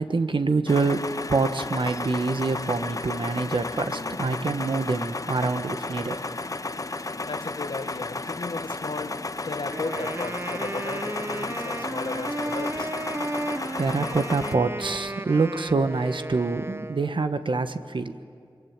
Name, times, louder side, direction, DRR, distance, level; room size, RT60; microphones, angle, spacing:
voice 1, 0.0-6.2 13.8-18.1, right 3 dB, 70° right, 1.3 m, -26 dB
sound 1, 0.7-14.5, left 3 dB, 40° left, 0.8 m, -33 dB
voice 2, 7.0-12.9, left 3 dB, 70° left, 1.2 m, -36 dB
Wind instrument woodwind instrument, 9.7-17.3, right 2 dB, 30° right, 0.9 m, -34 dB
24.5 x 23.0 x 9.0 m
wide cardioid pair, 45°, 9 cm